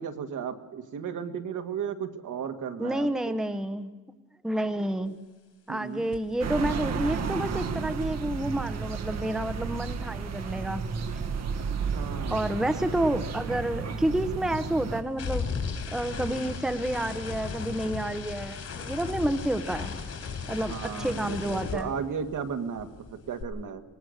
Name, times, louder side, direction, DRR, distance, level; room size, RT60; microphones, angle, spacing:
voice 1, 0.0-3.3 5.7-6.1 11.9-12.5 16.3-16.4 20.6-23.8, right 7 dB, 70° right, 7 dB, 1.8 m, -35 dB
voice 2, 2.8-3.9 4.4-5.1 5.7-10.8 12.3-15.5 15.9-19.9 20.5-21.9, right 1 dB, ahead, 9 dB, 0.9 m, -29 dB
sound 1, 6.1-6.3 6.6-11.0 11.2-22.5 22.8-23.4, left 5 dB, 50° left, 3.4 m, -38 dB
sound 2, 6.4-15.0, right 5 dB, 55° right, 1.3 m, -32 dB
24.5 x 19.0 x 6.5 m, 1.3 s
wide cardioid pair, 140°, 32 cm